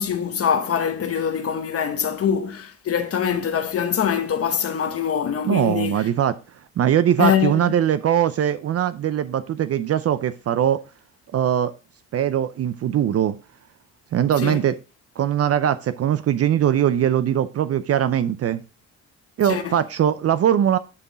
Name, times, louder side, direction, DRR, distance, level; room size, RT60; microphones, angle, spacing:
voice 1, 0.0-6.0 7.2-7.7 14.4-14.6 19.5-19.6, left 8 dB, 50° left, 0.9 m, -23 dB
voice 2, 5.4-6.4 6.8-10.8 11.3-11.7 12.1-13.4 14.1-14.8 15.2-18.6 19.4-20.8, right 10 dB, 50° right, 0.5 m, -21 dB
11.0 x 3.8 x 4.0 m
cardioid pair, 90°, 30 cm